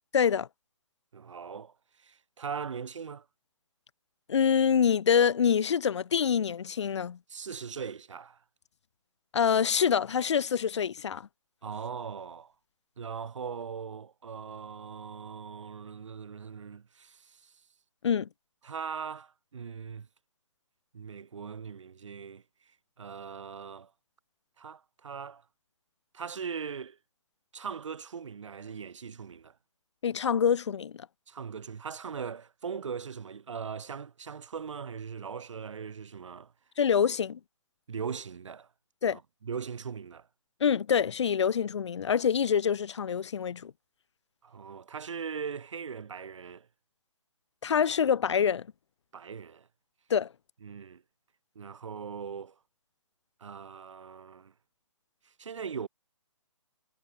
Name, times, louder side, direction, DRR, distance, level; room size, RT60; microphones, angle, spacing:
voice 1, 0.1-0.5 4.3-7.2 9.3-11.3 18.0-18.3 30.0-31.1 36.8-37.4 39.0-39.2 40.6-43.7 47.6-48.7 50.1-50.3, left 7 dB, 60° left, 2.9 m, -26 dB
voice 2, 1.1-3.3 7.3-8.4 11.6-12.5 13.0-17.5 18.6-20.1 20.9-22.4 23.0-23.9 24.6-25.4 26.1-27.0 27.5-29.6 31.3-36.5 37.9-38.7 39.1-40.3 44.4-46.7 49.1-49.7 50.6-51.0 51.6-52.6 53.4-54.5 55.2-55.9, right 6 dB, 65° right, 5.5 m, -40 dB
hypercardioid pair, 150°, 17 cm